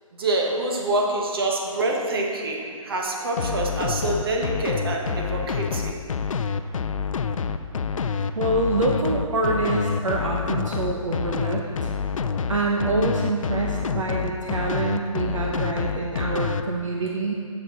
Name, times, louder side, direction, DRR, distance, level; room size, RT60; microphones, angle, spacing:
voice 1, 0.2-6.0, right 2 dB, 40° right, 0 dB, 1.3 m, -26 dB
sound 1, 3.4-16.6, left 6 dB, 65° left, 0.5 m, -27 dB
voice 2, 8.3-11.9 12.5-17.3, right 2 dB, 60° right, 0 dB, 0.9 m, -26 dB
7.7 x 6.6 x 6.2 m, 2.3 s
hypercardioid pair, 170°, 18 cm